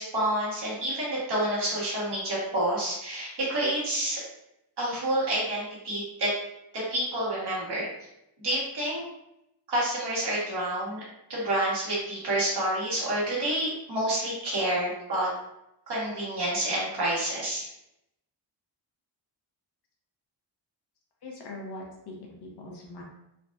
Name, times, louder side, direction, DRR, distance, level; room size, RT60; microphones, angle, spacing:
voice 1, 0.0-4.2 4.8-6.3 6.7-7.9 8.4-9.0 9.7-11.0 11.3-15.3 15.9-17.7, right 1 dB, 65° right, -7 dB, 1.5 m, -28 dB
voice 2, 21.2-23.0, left 2 dB, 65° left, -2 dB, 0.9 m, -41 dB
3.8 x 2.5 x 2.3 m, 0.84 s
wide cardioid pair, 135°, 43 cm